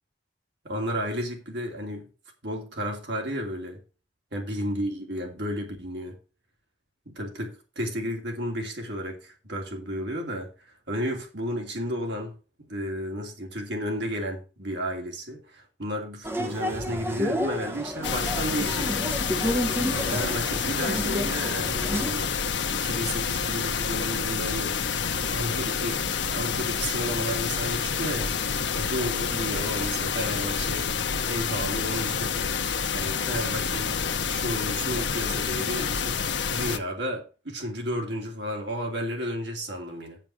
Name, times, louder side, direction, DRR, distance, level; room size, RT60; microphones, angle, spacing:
voice 1, 0.6-2.1 2.4-3.8 4.3-6.2 7.1-12.3 12.7-19.0 20.0-24.8 25.3-26.0 26.3-30.9 31.3-32.5 32.9-34.0 34.3-36.2 36.5-40.2, equal, 70° right, 2.7 m, -32 dB
sound 1, 16.2-22.1, equal, 10° right, 0.8 m, -30 dB
sound 2, 18.0-36.8, left 6 dB, 75° left, 0.8 m, -28 dB
7.5 x 7.3 x 6.3 m
head